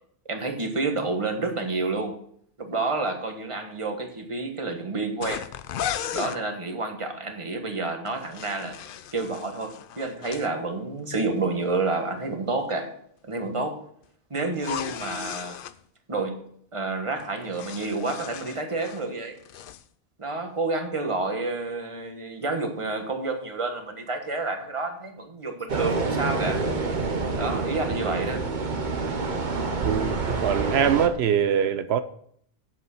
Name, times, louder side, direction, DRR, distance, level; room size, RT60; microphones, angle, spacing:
voice 1, 0.3-2.2 2.6-5.4 6.1-8.8 9.1-13.0 13.3-13.8 14.3-15.6 16.1-16.4 16.7-19.4 20.2-26.6 27.4-28.4, right 3 dB, 30° right, 1.4 m, -29 dB
sound 1, 5.2-6.4 8.1-10.5 14.5-15.8 17.2-19.1 19.4-19.8, left 10 dB, 65° left, 0.7 m, -36 dB
sound 2, 25.7-31.1, right 3 dB, 50° right, 1.1 m, -27 dB
voice 2, 29.8-32.0, right 8 dB, 85° right, 0.9 m, -23 dB
8.1 x 7.4 x 5.6 m
omnidirectional pair, 1.1 m